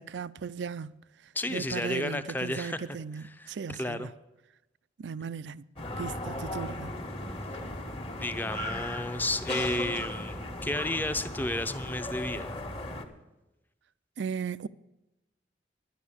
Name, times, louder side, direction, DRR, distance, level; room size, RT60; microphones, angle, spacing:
voice 1, 0.0-4.1 5.0-5.7 6.0-7.0 14.2-14.7, right 6 dB, 75° right, 0.4 m, -37 dB
voice 2, 1.3-2.8 3.4-4.1 8.2-12.6, left 1 dB, 10° left, 0.7 m, -32 dB
sound 1, 5.8-13.0, left 1 dB, 30° left, 1.4 m, -37 dB
11.0 x 10.5 x 7.1 m
head